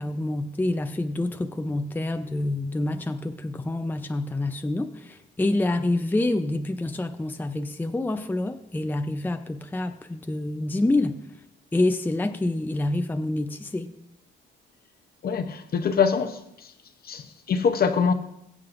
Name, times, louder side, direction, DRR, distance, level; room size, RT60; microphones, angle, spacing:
voice 1, 0.0-11.2 11.7-13.9, left 2 dB, 10° left, 0.6 m, -27 dB
voice 2, 15.2-16.4 17.0-18.1, left 6 dB, 50° left, 0.8 m, -24 dB
21.5 x 7.4 x 2.6 m
cardioid pair, 90°, 20 cm